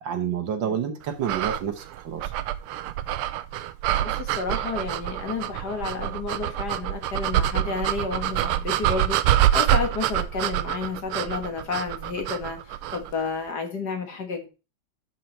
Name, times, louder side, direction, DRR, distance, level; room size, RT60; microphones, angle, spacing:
voice 1, 0.0-2.3, right 8 dB, 60° right, 1.6 m, -29 dB
sound 1, 1.2-13.1, right 12 dB, 85° right, 1.5 m, -26 dB
voice 2, 4.0-14.5, left 4 dB, 50° left, 1.9 m, -31 dB
12.0 x 4.6 x 4.4 m
omnidirectional pair, 2.4 m